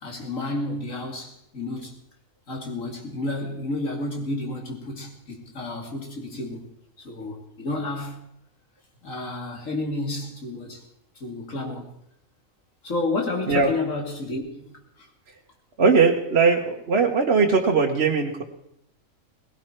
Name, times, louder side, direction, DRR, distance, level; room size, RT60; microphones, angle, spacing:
voice 1, 0.0-2.0 2.5-6.7 7.0-8.2 9.0-10.8 11.2-11.9 12.8-14.6 15.0-15.1, left 2 dB, 70° left, 3.0 m, -31 dB
voice 2, 15.8-18.4, right 5 dB, 50° right, 1.4 m, -20 dB
19.0 x 16.5 x 4.5 m
omnidirectional pair, 1.4 m